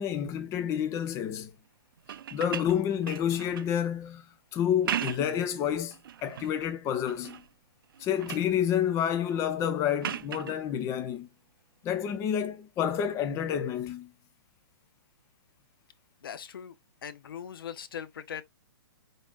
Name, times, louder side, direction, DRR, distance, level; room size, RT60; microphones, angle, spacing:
voice 1, 0.0-1.5 2.3-4.2 4.5-6.0 6.2-7.4 8.0-11.3 11.8-14.1, left 9 dB, 25° left, 0.7 m, -29 dB
sound 1, 2.0-3.8 4.7-5.4 5.9-6.5 7.0-7.5 7.8-8.6 10.0-10.6 12.3-12.5, right 9 dB, 65° right, 0.4 m, -37 dB
voice 2, 16.2-16.8 17.0-18.4, left 8 dB, 65° left, 0.8 m, -40 dB
5.1 x 3.9 x 2.4 m
hypercardioid pair, 130°, 13 cm